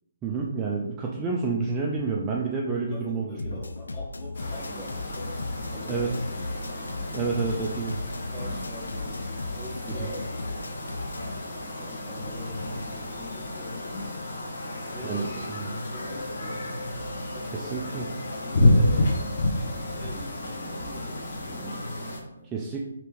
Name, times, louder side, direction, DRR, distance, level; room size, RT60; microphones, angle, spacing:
voice 1, 0.2-3.2 5.9-6.1 7.1-8.0 9.9-10.1 15.0-15.7 17.5-18.1 21.6-21.7 22.5-22.9, right 4 dB, 15° right, -2 dB, 0.4 m, -29 dB
voice 2, 2.7-6.8 7.3-7.7 8.3-9.3 9.5-10.6 11.8-14.2 14.9-17.1 17.3-17.9 18.3-19.4 19.9-22.6, left 1 dB, 10° left, -7 dB, 1.3 m, -44 dB
sound 1, 3.4-11.4, left 3 dB, 75° left, 0.3 m, -36 dB
sound 2, 4.3-22.2, left 1 dB, 55° left, 0.9 m, -30 dB
3.3 x 2.9 x 3.1 m, 0.84 s
figure-of-eight pair, 140°, 0 cm